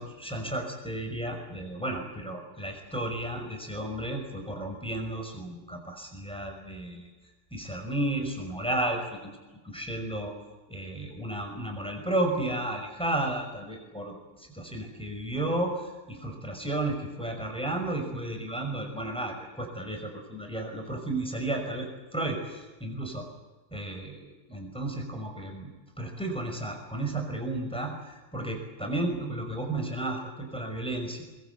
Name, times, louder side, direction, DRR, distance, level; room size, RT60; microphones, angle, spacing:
voice 1, 0.0-7.1 7.5-9.3 9.6-10.3 10.7-23.3 23.7-25.7 26.0-31.2, right 1 dB, ahead, 2 dB, 5.8 m, -33 dB
24.5 x 21.5 x 8.4 m, 1.2 s
omnidirectional pair, 2.3 m